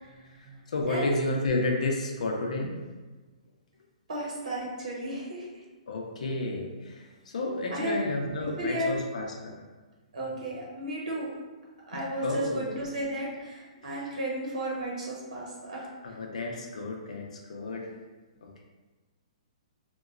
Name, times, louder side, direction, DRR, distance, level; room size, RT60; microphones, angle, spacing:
voice 1, 0.0-0.6 0.9-1.2 4.1-5.6 7.7-8.1 8.6-9.0 10.1-11.3 11.9-15.9, right 1 dB, 85° right, -4 dB, 0.8 m, -33 dB
voice 2, 0.7-2.7 5.9-9.6 11.9-12.9 13.8-14.0 16.0-17.9 18.4-18.6, left 2 dB, 75° left, 1 dB, 0.6 m, -32 dB
2.8 x 2.2 x 2.4 m, 1.3 s
hypercardioid pair, 160°, 4 cm